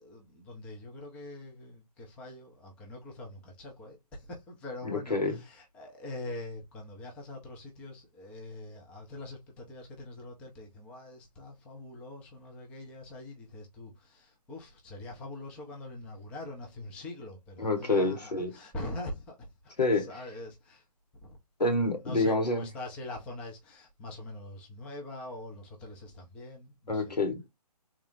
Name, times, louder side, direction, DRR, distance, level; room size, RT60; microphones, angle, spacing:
voice 1, 0.0-19.4 19.6-20.8 21.2-21.4 22.0-27.1, left 2 dB, 5° left, 0.4 m, -43 dB
voice 2, 4.8-5.4 17.6-18.5 19.8-20.1 21.6-22.7 26.9-27.5, left 2 dB, 85° left, 1.7 m, -27 dB
3.6 x 2.4 x 3.5 m
figure-of-eight pair, 145°, 21 cm